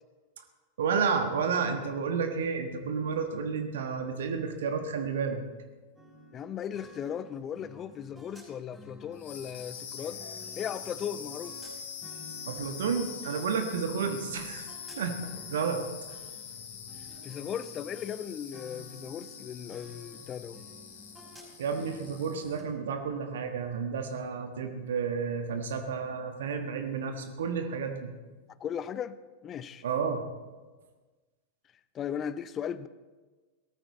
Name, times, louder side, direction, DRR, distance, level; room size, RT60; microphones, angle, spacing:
voice 1, 0.8-5.4 12.5-14.7 15.0-15.8 21.6-28.1 29.8-30.2, right 5 dB, 60° right, 1.4 m, -31 dB
sound 1, 6.0-18.2 18.5-22.6, equal, 10° right, 5.2 m, -52 dB
voice 2, 6.3-10.2 10.6-11.5 17.2-20.6 28.6-29.2 29.4-29.8 31.9-32.9, left 8 dB, 25° left, 0.6 m, -37 dB
sound 2, 9.1-22.7, left 8 dB, 55° left, 1.8 m, -44 dB
17.5 x 14.0 x 4.1 m
figure-of-eight pair, 90°, 0 cm